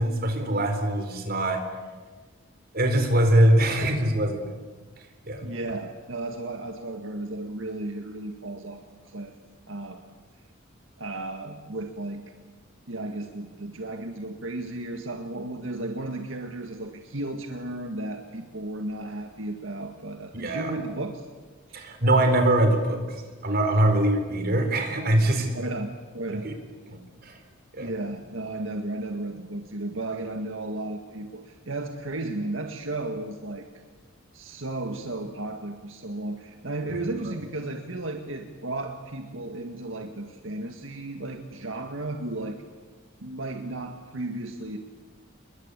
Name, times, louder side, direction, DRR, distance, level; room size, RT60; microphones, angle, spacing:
voice 1, 0.0-1.6 2.7-4.4 5.3-5.5 20.4-20.7 21.7-23.0 23.4-25.5 26.4-26.5 26.9-27.4 27.7-27.9 36.9-37.0, right 1 dB, 50° right, 6 dB, 4.1 m, -22 dB
voice 2, 5.4-9.3 9.7-10.0 11.0-12.2 12.9-21.3 21.7-21.9 23.8-24.0 25.5-25.9 26.1-26.5 27.8-33.6 34.3-42.6 43.2-44.8, right 2 dB, 75° right, 4 dB, 1.9 m, -34 dB
27.5 x 22.5 x 8.3 m, 1.4 s
head